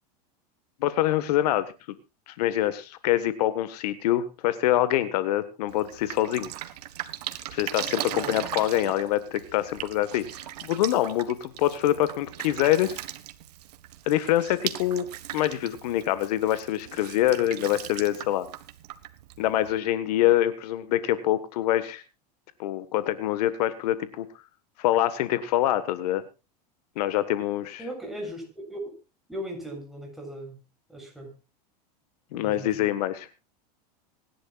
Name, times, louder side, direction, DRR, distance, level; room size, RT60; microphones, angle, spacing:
voice 1, 0.8-2.0 2.3-6.5 7.5-10.2 10.6-13.0 14.1-15.1 15.3-18.5 19.4-22.0 22.6-24.3 24.8-26.2 26.9-27.8 32.3-33.3, left 13 dB, 75° left, 13 dB, 1.6 m, -25 dB
Drip, 5.7-19.8, right 14 dB, 80° right, 1.6 m, -39 dB
voice 2, 27.8-28.8 29.3-30.6 30.9-31.3 32.3-32.9, equal, ahead, 0 dB, 7.0 m, -38 dB
26.0 x 11.5 x 2.5 m, 0.29 s
supercardioid pair, 125°, 20 cm